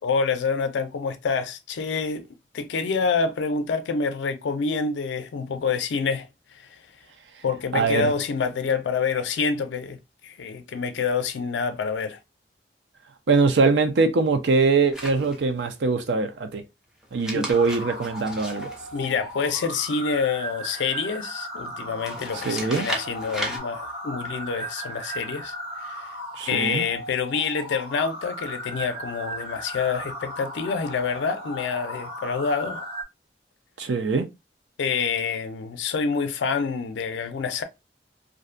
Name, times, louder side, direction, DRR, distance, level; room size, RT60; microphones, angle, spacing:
voice 1, 0.0-2.3 2.5-6.8 7.4-12.2 17.3-17.5 18.9-25.5 25.8-26.2 26.5-32.9 34.8-37.6, left 5 dB, 85° left, 0.4 m, -27 dB
voice 2, 7.7-8.1 13.3-16.6 17.1-18.7 22.5-22.9 26.4-26.8 33.8-34.3, right 4 dB, 80° right, 0.5 m, -22 dB
sound 1, 14.9-15.7 17.0-19.6 22.0-23.6, equal, 5° right, 0.5 m, -35 dB
sound 2, 17.5-33.0, equal, 35° right, 0.9 m, -36 dB
2.5 x 2.1 x 2.4 m
head